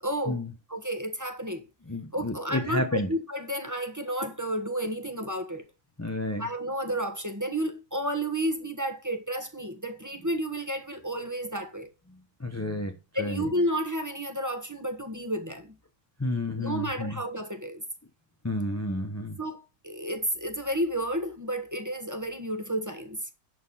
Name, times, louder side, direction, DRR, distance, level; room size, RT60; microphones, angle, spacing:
voice 1, 0.0-0.4 0.7-1.7 2.1-5.7 6.4-11.9 13.1-15.8 16.6-17.8 19.4-23.2, right 1 dB, 10° right, 1.3 m, -31 dB
voice 2, 1.9-3.1 6.0-6.5 12.1-13.5 16.2-17.2 18.4-19.4, left 1 dB, 15° left, 0.6 m, -31 dB
11.0 x 4.4 x 5.5 m
omnidirectional pair, 1.6 m